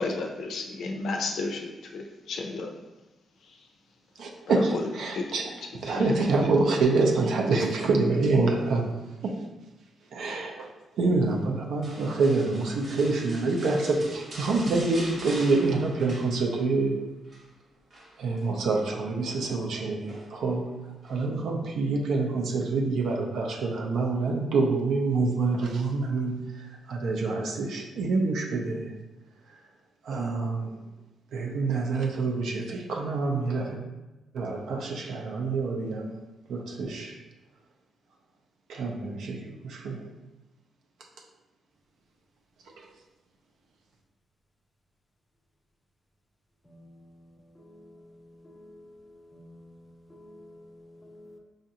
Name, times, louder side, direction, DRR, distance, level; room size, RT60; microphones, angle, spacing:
voice 1, 0.0-2.7 3.5-3.6 4.5-4.8 5.1-5.3 5.9-6.3, left 3 dB, 65° left, 0.5 m, -32 dB
voice 2, 4.2-8.8 9.2-9.4 10.1-17.0 18.2-20.6 21.0-28.9 29.5-29.6 30.0-30.8 31.3-33.8 34.3-36.2 36.5-37.2 38.7-40.1 42.8-42.9, right 3 dB, 75° right, 0.6 m, -27 dB
sound 1, 11.8-16.8 17.1-17.5 17.9-18.9 20.1-20.5 21.0-21.2, right 1 dB, 40° right, 0.8 m, -43 dB
voice 3, 48.4-48.9 49.3-49.7 50.1-50.7 51.0-51.4, left 1 dB, 10° left, 0.4 m, -50 dB
5.0 x 2.4 x 2.8 m
wide cardioid pair, 165°, 0 cm